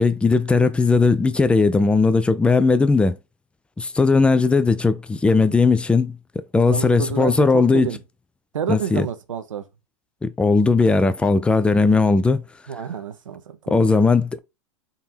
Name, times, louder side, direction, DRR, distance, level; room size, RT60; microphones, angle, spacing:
voice 1, 0.0-3.2 3.8-6.2 6.5-7.9 8.7-9.1 10.2-12.4 13.7-14.4, left 4 dB, 5° left, 0.4 m, -18 dB
voice 2, 6.7-8.0 8.5-9.6 12.7-13.9, right 7 dB, 85° right, 0.7 m, -29 dB
3.9 x 2.7 x 4.3 m
hypercardioid pair, 105°, 16 cm